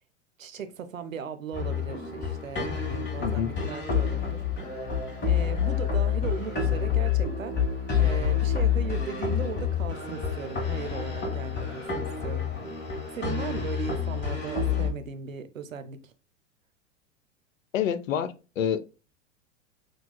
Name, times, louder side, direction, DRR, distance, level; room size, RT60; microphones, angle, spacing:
voice 1, 0.4-4.4 5.3-7.6 7.9-12.5 13.1-16.1, right 7 dB, 90° right, 0.7 m, -37 dB
sound 1, 1.5-14.9, left 7 dB, 25° left, 1.5 m, -28 dB
voice 2, 3.2-3.5 17.7-18.8, left 8 dB, 85° left, 0.5 m, -28 dB
6.3 x 2.3 x 2.2 m
hypercardioid pair, 95°, 39 cm